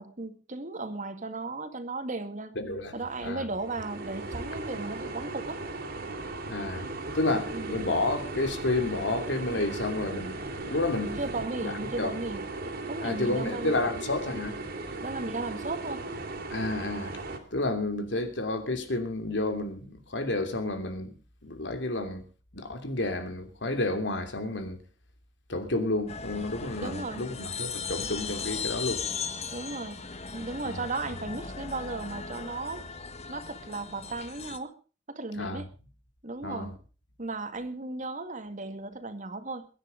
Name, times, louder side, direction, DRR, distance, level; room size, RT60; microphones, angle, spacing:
voice 1, 0.0-2.6 2.9-5.6 7.5-7.7 11.2-12.5 12.9-13.7 15.0-16.0 26.8-27.3 29.5-30.0 30.3-32.8 33.3-34.7 35.1-35.7 36.2-36.7 37.2-39.7, right 3 dB, 45° right, 2.0 m, -35 dB
voice 2, 2.5-3.5 6.5-6.9 7.1-11.2 11.6-12.1 13.0-14.6 16.5-17.2 17.5-21.2 21.4-22.2 22.5-24.8 25.5-29.0 30.6-30.8 35.4-35.6 36.4-36.7, left 2 dB, 80° left, 3.0 m, -31 dB
sound 1, 3.5-17.4, right 2 dB, 60° right, 3.2 m, -37 dB
sound 2, 26.1-34.6, left 5 dB, 35° left, 1.5 m, -37 dB
22.0 x 10.0 x 5.1 m
head